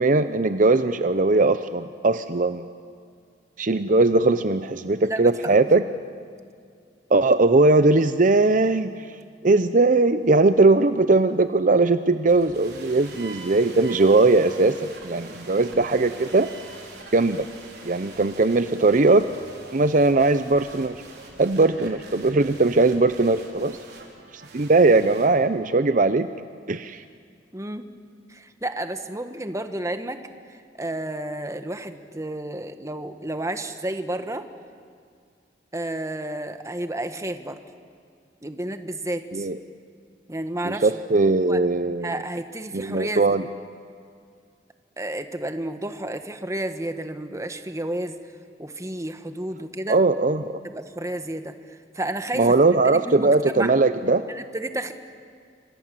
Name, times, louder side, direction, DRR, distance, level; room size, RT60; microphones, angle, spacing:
voice 1, 0.0-2.6 3.6-5.8 7.1-8.9 9.4-14.8 15.0-16.5 17.1-17.5 17.8-19.3 19.7-20.9 21.4-23.8 24.5-26.3 26.7-27.0 39.3-39.6 40.6-42.1 42.7-43.4 49.9-50.5 52.4-54.2, right 3 dB, 50° right, 11 dB, 0.7 m, -19 dB
voice 2, 5.0-5.5 27.5-27.9 28.3-30.2 30.8-34.5 35.7-37.6 38.4-39.5 40.3-40.9 41.5-41.6 42.0-43.5 45.0-48.2 48.6-50.0 50.6-52.5 52.9-53.7 54.3-54.9, right 1 dB, 20° right, 8 dB, 1.4 m, -31 dB
sound 1, 12.3-25.3, right 3 dB, 65° right, 5.0 m, -44 dB
28.0 x 26.0 x 7.7 m, 2.2 s
head